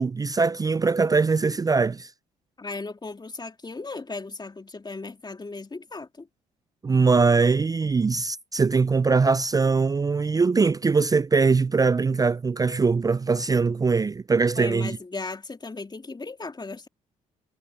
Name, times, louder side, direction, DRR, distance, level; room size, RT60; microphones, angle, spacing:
voice 1, 0.0-2.1 6.8-15.0, right 4 dB, 20° right, 0.4 m, -22 dB
voice 2, 2.6-6.3 14.5-16.9, left 3 dB, 25° left, 3.3 m, -36 dB
hypercardioid pair, 50°, 18 cm